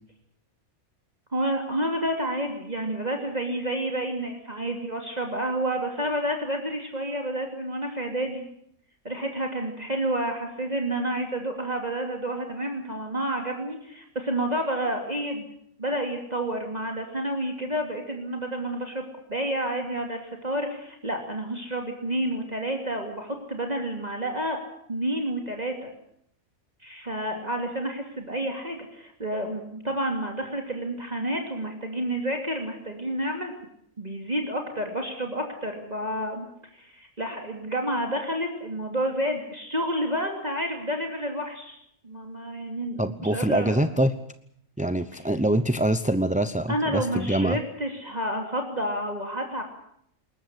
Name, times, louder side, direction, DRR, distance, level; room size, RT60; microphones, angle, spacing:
voice 1, 1.3-8.4 9.0-15.5 15.8-19.0 19.3-24.6 24.9-25.9 26.8-33.5 34.0-36.5 36.7-41.8 42.0-43.8 46.7-49.6, right 1 dB, 30° right, 2 dB, 2.9 m, -29 dB
voice 2, 43.0-44.1 44.8-47.6, right 1 dB, 10° right, 11 dB, 0.5 m, -24 dB
21.5 x 20.0 x 8.3 m, 0.70 s
omnidirectional pair, 1.5 m